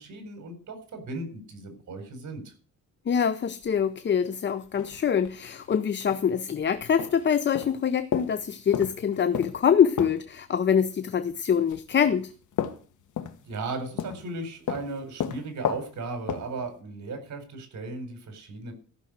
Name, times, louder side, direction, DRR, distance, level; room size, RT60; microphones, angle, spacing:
voice 1, 0.0-2.5 13.4-18.7, right 3 dB, 65° right, 6 dB, 4.6 m, -36 dB
voice 2, 3.1-12.3, left 7 dB, 35° left, 12 dB, 0.6 m, -24 dB
sound 1, 3.4-3.7 4.2-4.4 4.6-5.7 6.0-6.2 6.6-7.3 7.5-10.4 11.1-13.7 14.0-14.4 14.7-16.7, left 9 dB, 70° left, 1.4 m, -33 dB
14.5 x 6.3 x 7.9 m, 0.41 s
cardioid pair, 145°, 31 cm